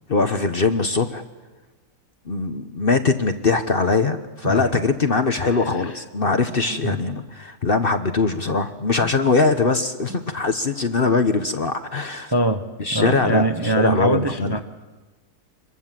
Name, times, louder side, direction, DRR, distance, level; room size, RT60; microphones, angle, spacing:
voice 1, 0.1-1.2 2.3-12.3 12.8-14.5, left 4 dB, 40° left, 8 dB, 1.1 m, -21 dB
voice 2, 4.4-4.8 5.5-6.0 6.7-7.0 9.0-9.1 10.1-10.2 12.3-12.6 12.9-14.6, right 2 dB, 20° right, 6 dB, 0.8 m, -23 dB
26.5 x 22.0 x 7.5 m, 1.2 s
omnidirectional pair, 1.7 m